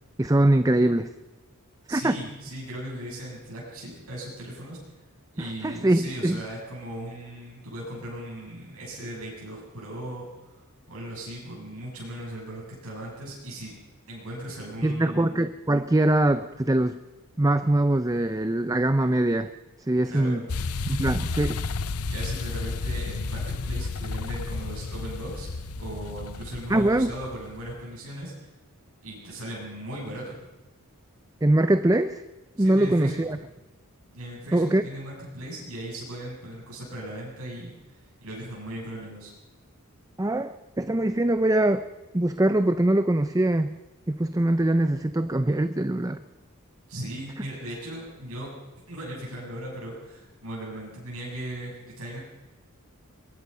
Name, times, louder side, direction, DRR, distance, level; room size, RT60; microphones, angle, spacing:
voice 1, 0.2-1.1 1.9-2.1 5.4-6.4 14.8-17.0 17.4-19.5 19.9-20.4 20.8-21.6 26.7-27.1 31.4-32.2 32.6-33.4 34.5-34.8 40.2-41.9 42.1-43.8 44.1-46.2, right 1 dB, 15° right, 11 dB, 0.6 m, -23 dB
voice 2, 1.9-4.8 5.3-10.6 10.9-13.7 14.1-15.3 20.0-20.4 22.1-25.5 25.8-28.5 29.0-30.5 32.6-33.2 34.1-39.3 46.9-48.5 48.9-52.2, right 1 dB, 75° right, -5 dB, 7.5 m, -38 dB
sound 1, 20.5-27.7, left 3 dB, 80° left, 0.8 m, -32 dB
22.5 x 22.5 x 5.6 m, 1.1 s
head